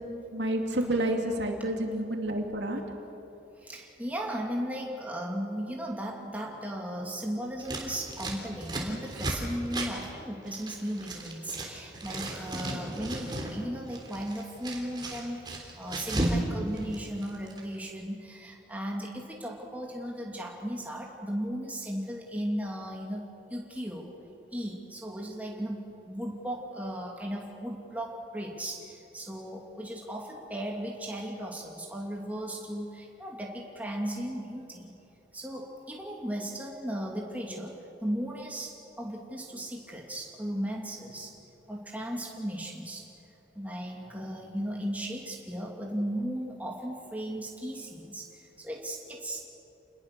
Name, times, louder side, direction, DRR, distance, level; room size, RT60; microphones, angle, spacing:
voice 1, 0.3-2.8, right 1 dB, 70° right, 2 dB, 2.6 m, -29 dB
voice 2, 3.6-23.2 23.5-24.1 24.5-34.9 35.3-41.4 41.7-43.1 43.5-49.4, equal, 10° right, -1 dB, 2.6 m, -36 dB
Scissors, 7.6-11.7 11.9-13.5 13.8-16.4 16.7-17.6, right 1 dB, 25° right, 3.5 m, -34 dB
28.0 x 20.5 x 6.8 m, 2.9 s
head